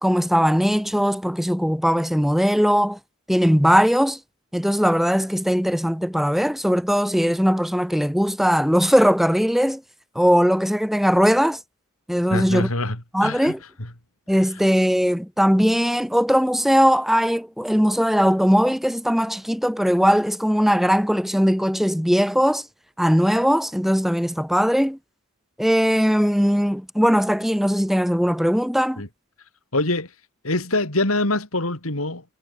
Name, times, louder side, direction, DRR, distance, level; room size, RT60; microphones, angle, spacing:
voice 1, 0.0-3.0 3.3-4.2 4.5-9.8 10.2-11.6 12.1-12.7 13.1-13.6 14.3-22.6 23.0-25.0 25.6-29.0, equal, ahead, 3.4 m, -19 dB
voice 2, 12.3-13.5 13.8-13.9 29.0-29.1 29.7-30.1 30.4-32.2, left 2 dB, 75° left, 4.4 m, -24 dB
head